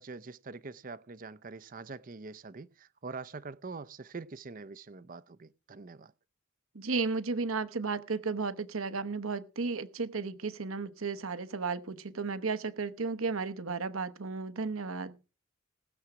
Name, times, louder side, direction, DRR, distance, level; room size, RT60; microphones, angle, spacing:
voice 1, 0.0-6.1, right 4 dB, 40° right, 0.6 m, -44 dB
voice 2, 6.7-15.1, right 4 dB, 80° right, 1.0 m, -34 dB
19.0 x 7.1 x 4.8 m
head